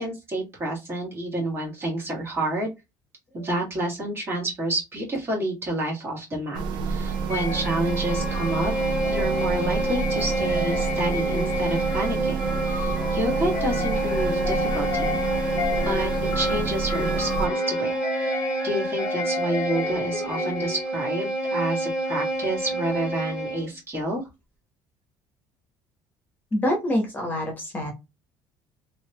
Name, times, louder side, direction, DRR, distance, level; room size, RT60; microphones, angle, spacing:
voice 1, 0.0-2.7 3.3-8.7 9.1-15.2 15.8-24.3, right 1 dB, 30° right, -2 dB, 1.7 m, -29 dB
sound 1, 6.5-17.5, right 6 dB, 70° right, 0.6 m, -29 dB
Bowed string instrument, 7.1-23.7, right 1 dB, 10° right, 1.8 m, -28 dB
sound 2, 7.3-20.9, left 5 dB, 50° left, 0.7 m, -34 dB
voice 2, 26.5-27.9, left 1 dB, 20° left, 2 dB, 1.1 m, -26 dB
3.3 x 2.8 x 2.2 m, 0.23 s
cardioid pair, 125°, 8 cm